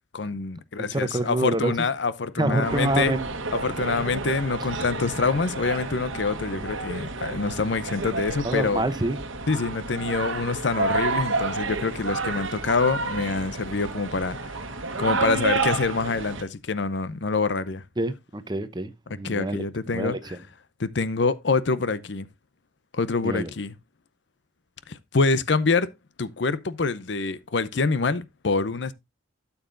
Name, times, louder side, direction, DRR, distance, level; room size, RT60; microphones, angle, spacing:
voice 1, 0.1-3.1 3.5-8.8 9.5-14.5 15.0-17.8 19.2-20.4 20.8-22.3 22.9-23.7 24.9-25.9 26.2-28.9, left 4 dB, 65° left, 0.6 m, -26 dB
voice 2, 0.8-1.7 2.4-3.3 8.4-9.2 18.0-19.6 19.9-20.2 23.2-23.5, right 2 dB, 20° right, 0.7 m, -26 dB
sound 1, 2.6-16.4, right 3 dB, 85° right, 1.2 m, -30 dB
12.5 x 7.1 x 2.5 m
head